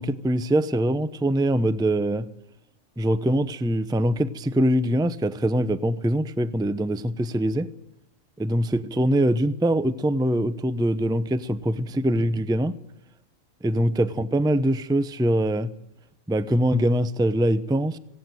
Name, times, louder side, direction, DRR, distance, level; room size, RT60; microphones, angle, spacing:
voice 1, 0.0-2.3 3.0-7.7 8.4-12.7 13.6-15.7 16.3-18.0, right 1 dB, 5° right, 0.5 m, -23 dB
17.5 x 17.0 x 9.1 m
omnidirectional pair, 1.4 m